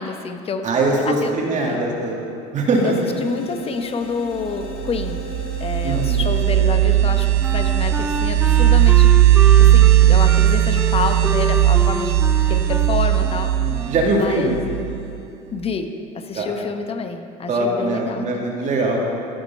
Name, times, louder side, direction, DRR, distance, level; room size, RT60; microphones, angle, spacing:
voice 1, 0.0-0.7 1.1-1.3 1.7-1.8 2.8-5.2 5.6-9.1 9.6-12.2 12.5-13.6 14.1-14.6 15.5-18.4, left 5 dB, 30° left, 7 dB, 0.9 m, -28 dB
voice 2, 0.6-2.2 2.5-3.0 5.8-6.2 13.5-14.6 16.3-16.5 17.5-19.0, right 2 dB, 40° right, -1 dB, 2.0 m, -21 dB
sound 1, 2.7-6.9, left 3 dB, 75° left, 1.2 m, -37 dB
sound 2, 4.6-15.2, right 12 dB, 75° right, 0.7 m, -17 dB
Wind instrument woodwind instrument, 7.0-14.2, right 1 dB, 5° right, 0.5 m, -29 dB
14.5 x 5.1 x 5.6 m, 2.7 s
hypercardioid pair, 85°, 18 cm